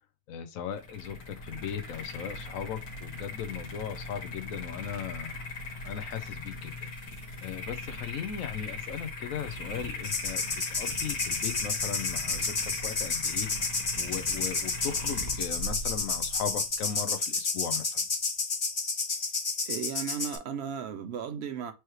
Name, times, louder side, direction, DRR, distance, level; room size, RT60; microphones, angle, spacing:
voice 1, 0.3-5.3 5.8-6.9 7.4-10.5 10.8-13.5 14.0-18.1, left 8 dB, 70° left, 1.0 m, -37 dB
sound 1, 0.7-17.1, left 2 dB, 90° left, 1.9 m, -39 dB
sound 2, 10.0-20.4, left 4 dB, 40° left, 0.4 m, -31 dB
voice 2, 19.7-21.7, right 7 dB, 60° right, 0.8 m, -35 dB
4.7 x 3.1 x 3.1 m
omnidirectional pair, 1.5 m